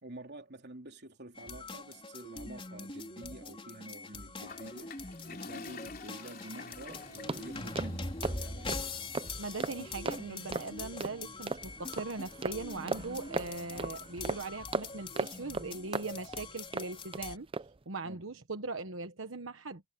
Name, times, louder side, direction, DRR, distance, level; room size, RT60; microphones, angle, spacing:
voice 1, 0.0-8.8 18.0-18.2, right 1 dB, 60° right, 3.6 m, -48 dB
sound 1, 1.4-17.4, left 3 dB, 30° left, 4.4 m, -43 dB
Toilet flush, 4.4-9.5, left 5 dB, 50° left, 3.2 m, -49 dB
sound 2, 6.9-17.2 17.5-17.8, right 4 dB, 25° right, 0.5 m, -39 dB
voice 2, 9.4-17.5 17.9-19.8, right 3 dB, 90° right, 1.2 m, -40 dB
head